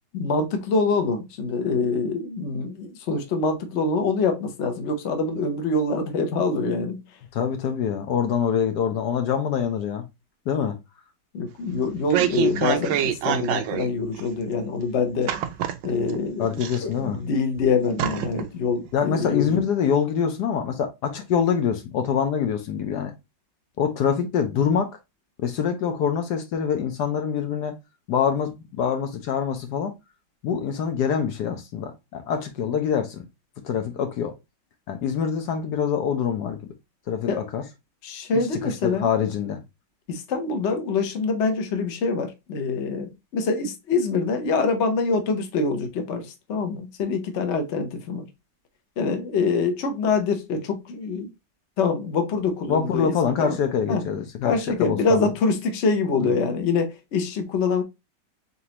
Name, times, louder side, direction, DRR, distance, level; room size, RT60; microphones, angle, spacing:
voice 1, 0.1-7.0 11.3-15.3 15.8-16.5 16.8-19.5 37.3-37.4 38.0-39.1 40.1-48.3 49.0-51.3 51.8-53.1 53.4-53.6 53.9-54.0 54.4-57.8, left 4 dB, 55° left, 0.8 m, -25 dB
voice 2, 7.3-10.0 10.5-10.8 16.4-17.2 18.9-23.1 23.8-24.9 25.4-27.8 28.1-29.9 30.4-33.2 33.6-34.3 34.9-36.6 37.1-37.6 38.3-38.4 38.8-39.6 52.7-55.3 56.2-56.3, left 7 dB, 70° left, 1.1 m, -25 dB
sound 1, 11.8-13.9 14.2-14.3 15.3-16.2 16.6-17.2 17.6-17.7 18.0-18.5 18.9-19.0, right 10 dB, 85° right, 1.3 m, -26 dB
4.2 x 3.8 x 2.8 m
omnidirectional pair, 2.1 m